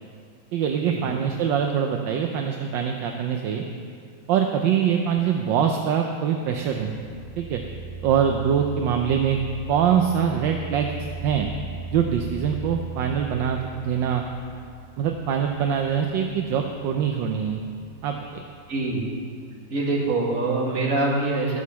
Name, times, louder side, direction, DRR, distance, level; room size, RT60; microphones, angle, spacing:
voice 1, 0.5-3.6 4.3-6.9 7.4-7.6 8.0-9.4 9.7-10.9 11.2-11.5 11.9-14.2 15.0-17.6 18.0-18.4, right 8 dB, 75° right, 3 dB, 1.3 m, -23 dB
sound 1, 6.7-19.2, right 4 dB, 5° right, 3.0 m, -39 dB
voice 2, 18.7-19.1 19.7-21.6, right 2 dB, 45° right, -3 dB, 2.2 m, -24 dB
12.5 x 6.4 x 7.0 m, 2.3 s
omnidirectional pair, 2.1 m